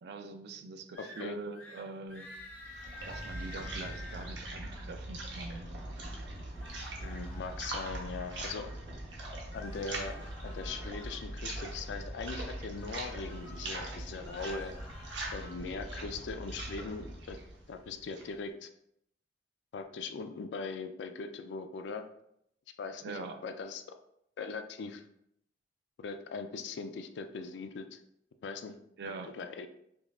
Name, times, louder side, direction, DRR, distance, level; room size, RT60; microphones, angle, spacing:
voice 1, 0.0-2.3 3.1-5.7 23.0-23.4 29.0-29.3, right 3 dB, 65° right, 8 dB, 0.4 m, -43 dB
sound 1, 0.9-1.2 1.5-1.8 2.1-4.3 6.4-8.5 9.5-11.2 12.6-13.7 14.1-15.5, left 2 dB, 10° left, 0.8 m, -50 dB
voice 2, 1.0-1.4 7.0-8.7 9.5-10.2 10.4-14.7 15.3-17.4 17.7-18.7 19.7-22.1 22.8-24.0 24.4-25.0 26.0-28.0 28.4-28.8 29.1-29.7, left 4 dB, 80° left, 8 dB, 0.3 m, -40 dB
sound 2, 2.3-18.4, right 1 dB, 85° right, 0.8 m, -41 dB
5.3 x 2.3 x 2.3 m, 0.76 s
head